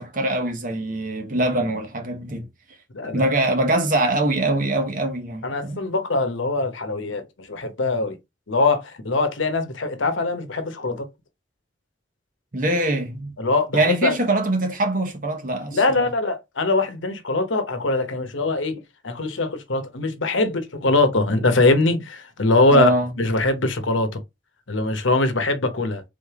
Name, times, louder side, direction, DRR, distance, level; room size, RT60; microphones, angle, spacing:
voice 1, 0.0-2.5 3.1-5.8 12.5-13.4 13.7-16.1 22.7-23.1, right 2 dB, 45° right, 1.0 m, -23 dB
voice 2, 2.9-3.3 5.4-8.2 8.5-11.1 13.4-14.2 15.7-22.9 23.2-24.2 24.7-26.0, left 2 dB, 80° left, 1.0 m, -22 dB
3.7 x 3.4 x 3.5 m
head